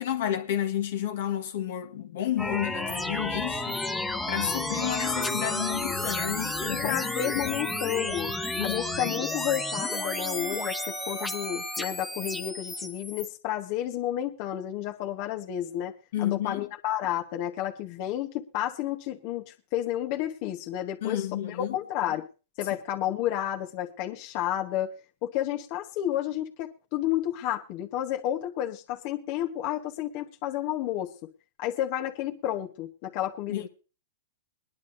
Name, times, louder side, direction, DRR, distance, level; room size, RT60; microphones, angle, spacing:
voice 1, 0.0-3.8 4.3-7.0 7.4-7.5 8.6-9.2 16.1-16.7 21.0-21.8 33.5-33.7, left 11 dB, 70° left, 1.4 m, -31 dB
sound 1, 2.4-13.3, left 2 dB, 5° left, 1.1 m, -32 dB
voice 2, 6.7-8.3 8.6-22.3 22.6-25.0 25.2-31.1 31.6-33.7, left 12 dB, 50° left, 1.2 m, -31 dB
Wind instrument woodwind instrument, 8.7-12.9, right 10 dB, 50° right, 1.0 m, -43 dB
22.0 x 10.5 x 2.6 m
hypercardioid pair, 125°, 0 cm